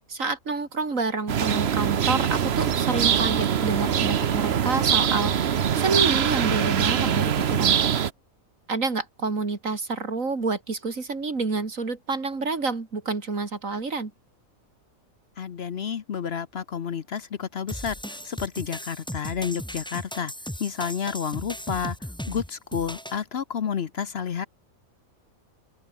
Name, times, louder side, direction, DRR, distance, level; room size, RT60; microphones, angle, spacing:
voice 1, 0.0-7.9 8.7-14.1, right 4 dB, 70° right, 3.3 m, -28 dB
sound 1, 1.3-8.1, right 8 dB, 55° right, 1.1 m, -23 dB
voice 2, 15.4-17.9 18.2-20.3 20.6-22.0 22.3-24.5, left 7 dB, 55° left, 1.0 m, -30 dB
sound 2, 17.7-23.2, equal, 5° left, 2.4 m, -37 dB
open air
omnidirectional pair, 1.4 m